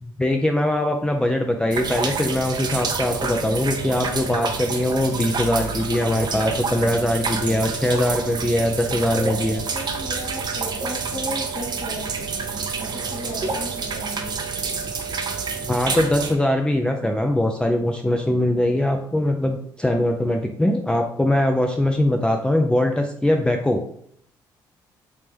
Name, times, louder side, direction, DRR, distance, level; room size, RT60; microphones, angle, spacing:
voice 1, 0.0-9.6 15.7-23.8, left 1 dB, 10° left, 3 dB, 0.4 m, -22 dB
sound 1, 1.7-16.4, right 5 dB, 45° right, 0.6 m, -28 dB
voice 2, 9.1-14.3, equal, 85° left, -4 dB, 1.3 m, -36 dB
3.2 x 2.9 x 3.5 m, 0.65 s
supercardioid pair, 60°, 10 cm